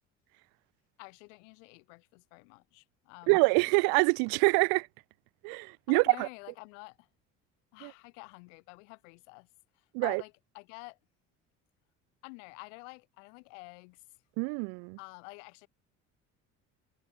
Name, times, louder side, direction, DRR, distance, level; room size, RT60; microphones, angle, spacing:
voice 1, 1.0-3.4 5.9-7.1 7.7-9.5 9.7-11.0 12.2-14.0 15.0-15.7, left 34 dB, 80° left, 2.8 m, -49 dB
voice 2, 3.3-4.9 5.4-6.3 7.8-7.9 9.9-10.2 14.4-15.0, right 38 dB, 75° right, 1.0 m, -25 dB
hypercardioid pair, 65°, 37 cm